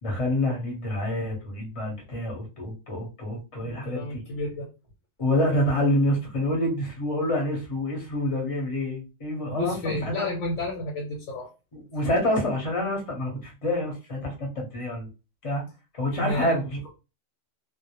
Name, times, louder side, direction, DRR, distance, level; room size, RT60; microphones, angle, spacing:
voice 1, 0.0-4.2 5.2-10.3 11.7-15.1 15.4-15.6 15.9-16.9, left 1 dB, 30° left, 0 dB, 0.8 m, -27 dB
voice 2, 3.6-4.7 9.5-11.5 16.2-16.6, left 2 dB, 90° left, -1 dB, 1.0 m, -31 dB
2.1 x 2.0 x 2.8 m, 0.29 s
omnidirectional pair, 1.3 m